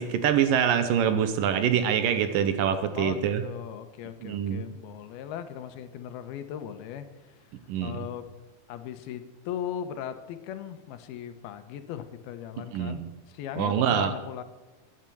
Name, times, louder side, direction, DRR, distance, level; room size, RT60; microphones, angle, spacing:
voice 1, 0.0-3.4 4.2-4.7 7.7-8.1 12.7-13.1 13.6-14.1, right 8 dB, 70° right, 9 dB, 2.4 m, -25 dB
voice 2, 2.9-7.1 7.8-8.3 8.7-14.4, left 9 dB, 90° left, 9 dB, 2.9 m, -38 dB
12.5 x 9.7 x 9.1 m, 1.2 s
omnidirectional pair, 4.4 m